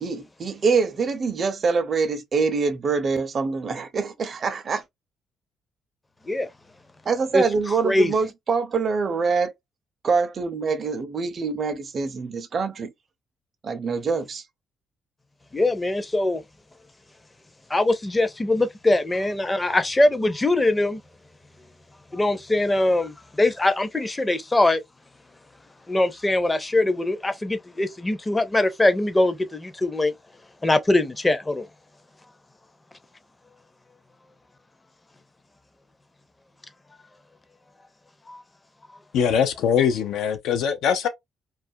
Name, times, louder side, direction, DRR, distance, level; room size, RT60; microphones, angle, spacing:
voice 1, 0.0-4.8 7.1-9.5 10.0-12.9 13.6-14.4, right 5 dB, 45° right, 0.5 m, -25 dB
voice 2, 15.5-16.4 17.7-21.0 22.1-24.8 25.9-30.1 30.6-31.6 38.3-38.4, left 2 dB, 20° left, 0.5 m, -22 dB
voice 3, 39.1-41.1, left 7 dB, 80° left, 0.3 m, -22 dB
2.4 x 2.1 x 2.6 m
cardioid pair, 90°, 0 cm